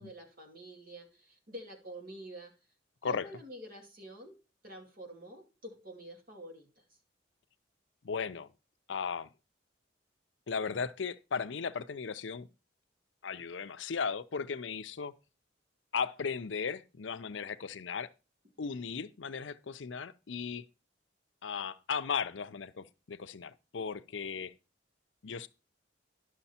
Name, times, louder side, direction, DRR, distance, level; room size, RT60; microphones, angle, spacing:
voice 1, 0.0-2.5 3.0-4.4 4.6-6.8, right 1 dB, 50° right, 2.4 m, -48 dB
voice 2, 8.0-8.5 8.9-9.3 10.5-12.5 13.2-15.1 15.9-18.1 18.6-20.6 21.4-24.5 25.2-25.5, left 6 dB, 80° left, 0.6 m, -36 dB
11.0 x 6.4 x 4.3 m
head